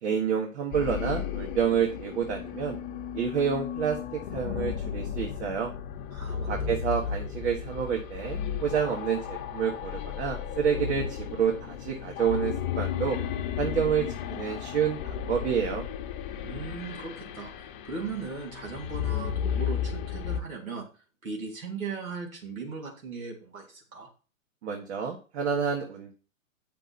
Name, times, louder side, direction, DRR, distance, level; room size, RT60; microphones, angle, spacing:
voice 1, 0.0-2.8 3.1-5.7 6.5-13.2 13.6-15.9 24.6-26.1, right 7 dB, 50° right, 0 dB, 1.8 m, -29 dB
sound 1, 0.7-20.4, left 8 dB, 35° left, 1.2 m, -34 dB
voice 2, 6.1-7.0 16.4-20.9 21.2-24.1, right 4 dB, 80° right, -1 dB, 3.1 m, -38 dB
8.3 x 6.4 x 4.4 m, 0.35 s
hypercardioid pair, 120°, 41 cm